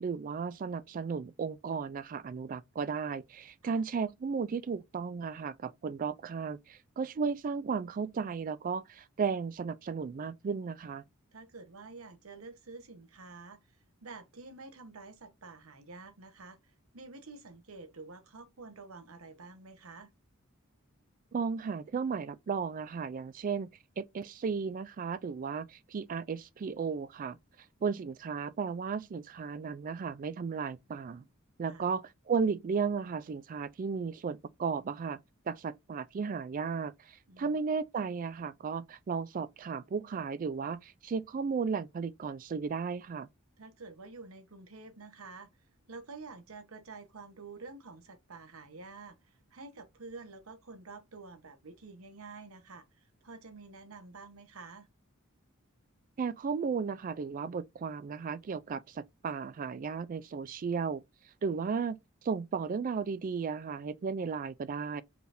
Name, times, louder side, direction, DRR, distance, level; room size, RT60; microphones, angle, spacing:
voice 1, 0.0-11.0 21.3-23.7 24.0-27.4 27.8-31.2 31.6-35.2 35.5-43.3 56.2-61.0 61.4-62.0 62.2-65.0, right 5 dB, 40° right, 0.3 m, -34 dB
voice 2, 11.3-20.1 31.7-31.9 37.3-37.6 43.6-45.5 45.9-54.9, right 3 dB, 85° right, 1.0 m, -49 dB
4.8 x 3.3 x 2.6 m
head